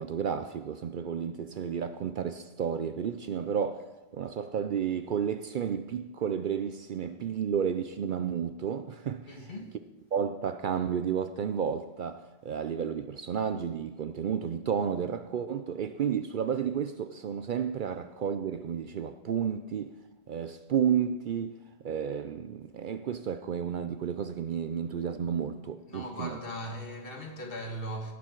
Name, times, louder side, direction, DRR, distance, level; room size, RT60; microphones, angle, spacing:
voice 1, 0.0-9.5 10.1-19.9 20.3-21.6 21.8-26.4, right 8 dB, 60° right, 0.6 m, -32 dB
voice 2, 9.3-9.8 25.9-28.1, equal, 60° left, 1.8 m, -39 dB
17.5 x 7.2 x 4.5 m
omnidirectional pair, 1.1 m